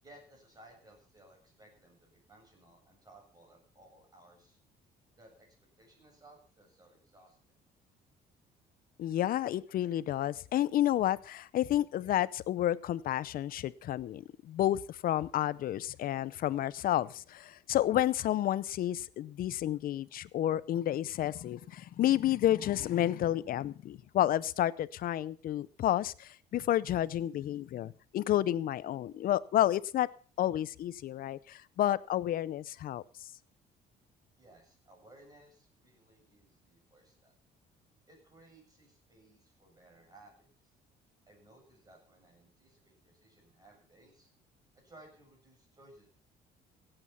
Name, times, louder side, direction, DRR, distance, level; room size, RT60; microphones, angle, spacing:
voice 1, 0.0-4.6 5.2-5.5 5.8-7.4 34.4-37.3 38.1-40.7 41.3-44.3 44.7-46.1, right 1 dB, 20° right, 1 dB, 7.6 m, -59 dB
voice 2, 9.0-30.1 30.4-33.0, left 12 dB, 60° left, 19 dB, 0.7 m, -30 dB
16.5 x 8.9 x 5.7 m, 0.42 s
cardioid pair, 110°, 17 cm